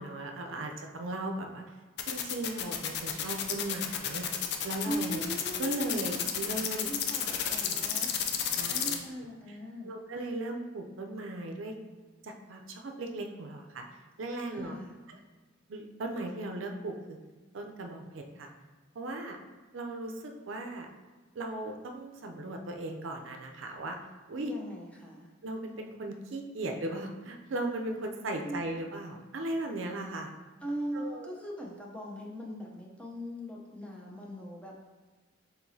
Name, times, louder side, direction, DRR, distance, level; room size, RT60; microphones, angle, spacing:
voice 1, 0.0-1.6 2.1-4.2 4.6-5.2 5.6-6.9 7.6-7.8 8.4-8.9 9.8-11.7 12.2-13.8 14.2-14.7 15.7-16.9 17.5-18.5 19.0-19.4 19.7-20.9 21.4-24.0 24.3-24.5 25.4-30.3 30.9-31.3, right 2 dB, 75° right, 3 dB, 0.5 m, -37 dB
sound 1, 2.0-9.0, left 9 dB, 55° left, 0.4 m, -31 dB
voice 2, 4.8-6.0 6.8-8.1 8.7-9.9 14.5-14.9 24.4-25.3 28.4-28.6 30.6-34.9, right 1 dB, 5° left, -3 dB, 0.6 m, -40 dB
4.6 x 3.8 x 2.7 m, 1.3 s
head